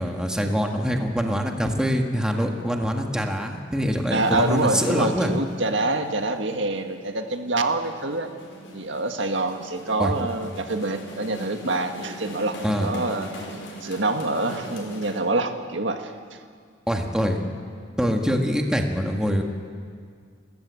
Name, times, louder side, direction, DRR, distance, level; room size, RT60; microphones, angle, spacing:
voice 1, 0.0-5.3 10.0-10.1 12.6-12.9 16.9-17.4 18.0-19.4, equal, 5° right, 2 dB, 1.9 m, -24 dB
voice 2, 4.1-8.3 8.7-13.3 13.8-16.4, right 2 dB, 75° right, 5 dB, 1.8 m, -26 dB
sound 1, 4.2-15.2, equal, 70° left, 4.7 m, -40 dB
28.5 x 15.0 x 8.4 m, 2.1 s
head